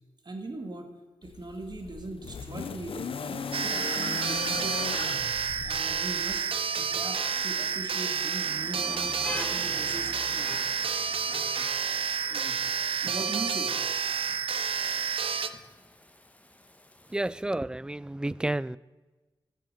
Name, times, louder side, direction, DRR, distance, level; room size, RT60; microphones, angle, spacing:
voice 1, 0.2-0.9 1.2-5.3 5.6-6.5 6.8-10.6 11.2-11.7 12.3-12.6 13.0-13.8, right 2 dB, 50° right, 2.0 m, -40 dB
sound 1, 1.2-6.4 7.5-7.6, left 6 dB, 85° left, 0.7 m, -37 dB
Rain, 2.3-17.4, left 1 dB, 15° left, 1.3 m, -47 dB
sound 2, 3.5-15.5, right 6 dB, 85° right, 0.6 m, -30 dB
voice 2, 17.1-18.8, right 1 dB, 10° right, 0.3 m, -30 dB
12.0 x 8.5 x 6.7 m
cardioid pair, 55°, 9 cm